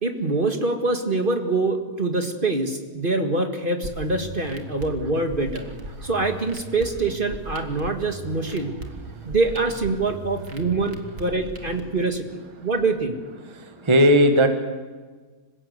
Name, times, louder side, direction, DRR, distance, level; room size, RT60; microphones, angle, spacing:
voice 1, 0.0-5.7 6.0-8.7 9.2-13.2, right 3 dB, 35° right, 6 dB, 1.9 m, -25 dB
sound 1, 3.8-11.8, right 1 dB, 80° right, 2.6 m, -38 dB
voice 2, 13.4-14.5, equal, 20° right, 6 dB, 1.5 m, -19 dB
26.5 x 16.5 x 8.1 m, 1.4 s
omnidirectional pair, 1.6 m